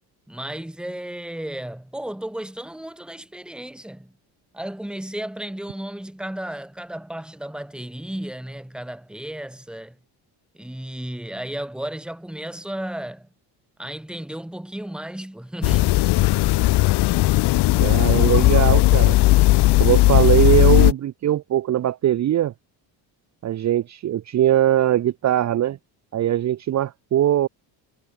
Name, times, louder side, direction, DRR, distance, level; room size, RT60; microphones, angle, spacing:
voice 1, 0.3-4.1 4.5-10.0 10.5-13.3 13.8-16.0, right 1 dB, ahead, 1.8 m, -34 dB
sound 1, 15.6-20.9, left 18 dB, 65° left, 0.8 m, -16 dB
voice 2, 17.8-19.2 19.8-22.5 23.4-25.8 26.1-27.5, right 12 dB, 40° right, 0.9 m, -21 dB
cardioid pair, 160°, 44 cm